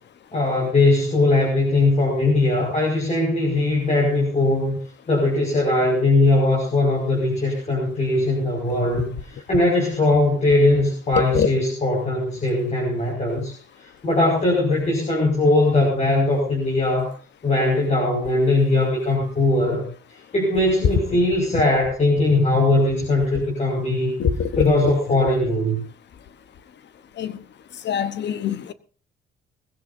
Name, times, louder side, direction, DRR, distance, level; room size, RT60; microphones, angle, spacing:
voice 1, 0.3-4.8 5.1-13.6 13.8-17.1 17.4-19.8 20.3-24.1 24.6-25.8, left 2 dB, 35° left, -2 dB, 5.5 m, -20 dB
voice 2, 27.8-28.7, left 8 dB, 60° left, 13 dB, 1.1 m, -23 dB
20.0 x 16.0 x 2.7 m, 0.38 s
cardioid pair, 90°, 20 cm